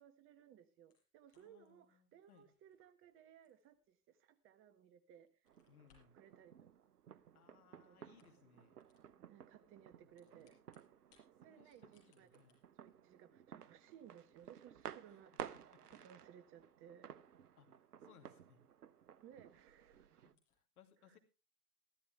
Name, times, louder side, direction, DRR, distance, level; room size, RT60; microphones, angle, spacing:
voice 1, 0.0-5.3 6.1-6.9 7.8-8.1 9.2-10.6 11.3-15.5 15.9-17.1 19.2-20.2 21.1-21.2, right 9 dB, 25° right, 10 dB, 1.3 m, -61 dB
sound 1, 0.9-4.8 5.2-6.2 7.3-7.8 8.0-8.5 8.8-9.1 9.9-11.3 11.6-18.7 19.0-19.1 19.5-19.6 19.8-19.9 20.3-20.6, left 5 dB, 30° left, 6.6 m, -79 dB
voice 2, 1.3-2.5 5.7-6.2 7.3-8.8 10.0-10.1 11.5-12.6 15.5-15.8 17.6-18.6 20.1-21.2, left 8 dB, 65° left, 6 dB, 2.8 m, -67 dB
sound 2, 5.5-20.3, right 9 dB, 75° right, 1.0 m, -55 dB
15.5 x 13.0 x 3.4 m, 0.30 s
hypercardioid pair, 115°, 46 cm